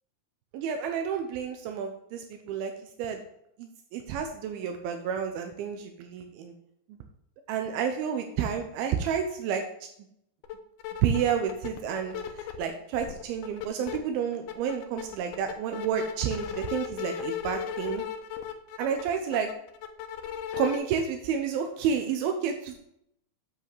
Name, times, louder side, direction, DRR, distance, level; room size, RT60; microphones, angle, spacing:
voice 1, 0.5-2.7 3.0-3.2 3.6-6.5 6.9-7.0 7.5-9.6 11.0-18.0 18.8-19.5 20.5-22.8, right 7 dB, 85° right, 5 dB, 2.6 m, -30 dB
sound 1, 10.4-10.6 10.8-12.7 13.0-14.0 14.3-20.8, left 9 dB, 80° left, 2.7 m, -36 dB
8.1 x 7.5 x 3.3 m, 0.74 s
omnidirectional pair, 4.4 m